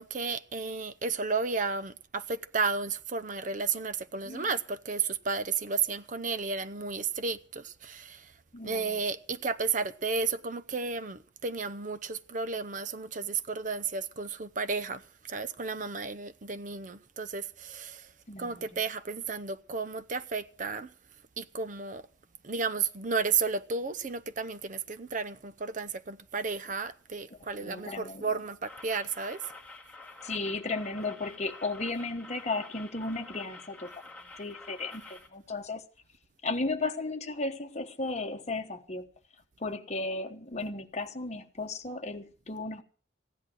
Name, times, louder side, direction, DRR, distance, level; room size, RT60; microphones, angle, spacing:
voice 1, 0.0-8.3 8.6-18.1 18.4-20.9 21.4-22.1 22.4-29.4, right 4 dB, 45° right, 0.7 m, -33 dB
voice 2, 8.5-9.0 18.3-18.7 27.5-28.3 30.2-33.9 34.4-35.8 36.4-39.0 39.6-42.8, left 3 dB, 40° left, 1.2 m, -35 dB
sound 1, 28.7-35.3, left 3 dB, 10° left, 2.0 m, -48 dB
15.5 x 10.5 x 6.3 m
head